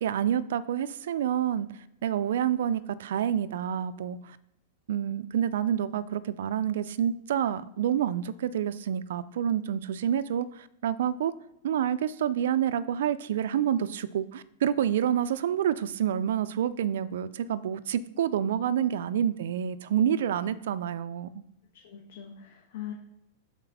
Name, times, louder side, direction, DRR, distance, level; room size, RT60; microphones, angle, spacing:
voice 1, 0.0-1.7 2.0-4.4 4.9-11.3 11.6-21.4, right 9 dB, 75° right, 15 dB, 0.3 m, -28 dB
voice 2, 21.8-22.9, left 11 dB, 70° left, 0 dB, 1.2 m, -41 dB
5.8 x 4.1 x 5.6 m, 0.85 s
supercardioid pair, 155°, 0 cm